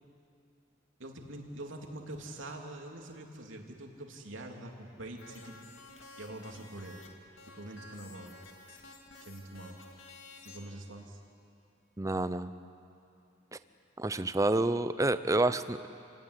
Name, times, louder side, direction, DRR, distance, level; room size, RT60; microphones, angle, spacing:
voice 1, 1.0-5.6 6.2-7.0 7.5-8.3 9.2-9.8 10.4-11.2, right 1 dB, 80° right, 2 dB, 3.1 m, -44 dB
sound 1, 5.2-7.1 7.4-10.7, left 3 dB, 70° left, 2.6 m, -52 dB
voice 2, 12.0-12.5 14.0-15.9, right 2 dB, 15° right, 12 dB, 0.7 m, -28 dB
28.5 x 18.0 x 9.9 m, 2.6 s
head